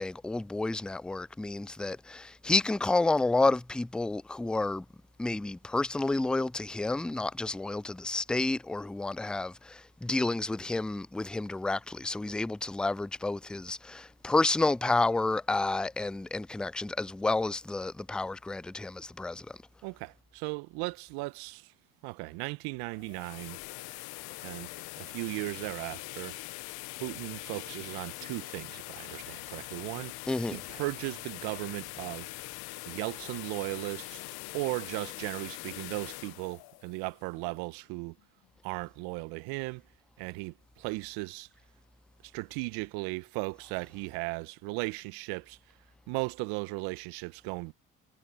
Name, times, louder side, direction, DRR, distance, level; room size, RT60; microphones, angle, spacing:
voice 1, 0.0-4.9 5.2-19.6 30.3-30.6, left 2 dB, ahead, 0.3 m, -30 dB
voice 2, 19.8-21.7 22.0-24.0 24.4-26.4 27.0-30.2 30.5-32.3 32.9-34.2 34.5-38.2 38.6-39.8 40.2-41.5 42.2-45.6 46.1-47.7, right 27 dB, 70° right, 1.5 m, -37 dB
sound 1, 22.9-37.8, left 22 dB, 65° left, 1.3 m, -43 dB
hypercardioid pair, 50°, 39 cm